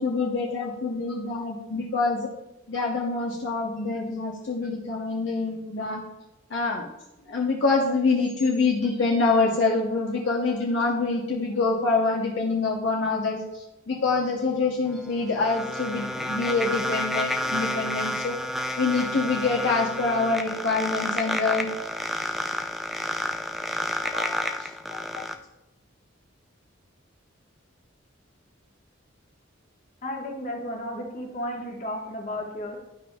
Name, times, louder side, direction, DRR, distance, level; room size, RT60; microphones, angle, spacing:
voice 1, 0.0-2.3 2.7-6.0 6.5-6.9 7.3-18.4 18.8-21.7 23.9-25.2, left 3 dB, 60° left, -3 dB, 0.9 m, -26 dB
sound 1, 14.9-25.3, equal, ahead, 0.3 m, -30 dB
voice 2, 30.0-32.8, left 1 dB, 35° left, -1 dB, 1.4 m, -33 dB
11.5 x 5.2 x 2.3 m, 0.92 s
head